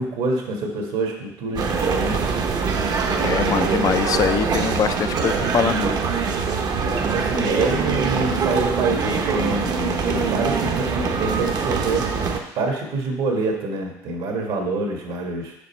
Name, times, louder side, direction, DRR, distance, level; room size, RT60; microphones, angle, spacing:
voice 1, 0.0-2.2 4.0-4.3 6.8-12.1 12.5-15.5, right 3 dB, 70° right, 2 dB, 1.4 m, -26 dB
sound 1, 1.6-12.4, right 5 dB, 45° right, 0.7 m, -23 dB
voice 2, 3.2-6.0 10.1-10.3, left 8 dB, 40° left, 11 dB, 0.3 m, -23 dB
5.1 x 5.1 x 4.3 m, 0.86 s
supercardioid pair, 85°, 9 cm